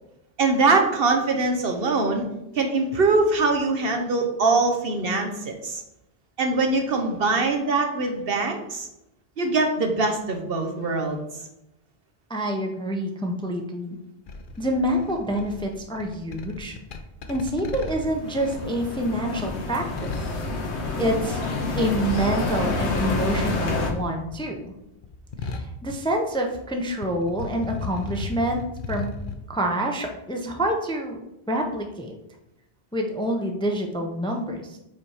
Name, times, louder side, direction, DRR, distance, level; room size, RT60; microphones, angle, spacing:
voice 1, 0.4-2.3 2.5-5.8 6.4-8.9 9.4-11.2, right 3 dB, 60° right, 4 dB, 1.1 m, -23 dB
voice 2, 12.3-14.0 14.6-16.8 17.3-20.1 21.0-21.4 21.7-24.7 25.4-29.1 29.5-32.1 32.9-34.8, right 1 dB, 5° left, 3 dB, 0.6 m, -27 dB
sound 1, 14.3-23.5 23.8-26.7 26.9-29.4, left 3 dB, 55° left, 0.7 m, -37 dB
sound 2, 17.9-23.9, left 3 dB, 85° left, 1.3 m, -28 dB
5.4 x 4.3 x 4.8 m, 0.87 s
omnidirectional pair, 1.1 m